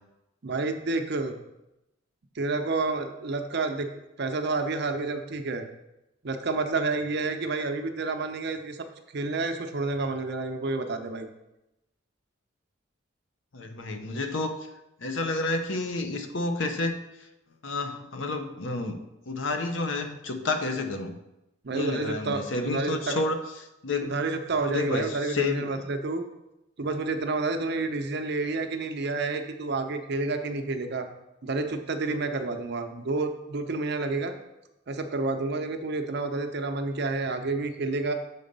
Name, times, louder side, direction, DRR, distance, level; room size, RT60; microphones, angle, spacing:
voice 1, 0.4-1.4 2.4-3.9 4.2-5.7 6.2-8.9 9.1-11.3 21.6-23.2 24.0-26.3 26.8-31.1 31.4-34.3 34.9-38.1, right 3 dB, 60° right, 6 dB, 0.7 m, -29 dB
voice 2, 13.5-14.6 15.0-17.3 17.6-19.0 19.3-21.2 21.7-23.5 23.8-24.2 24.6-25.9, left 3 dB, 75° left, 7 dB, 0.8 m, -30 dB
6.8 x 4.0 x 5.3 m, 0.92 s
head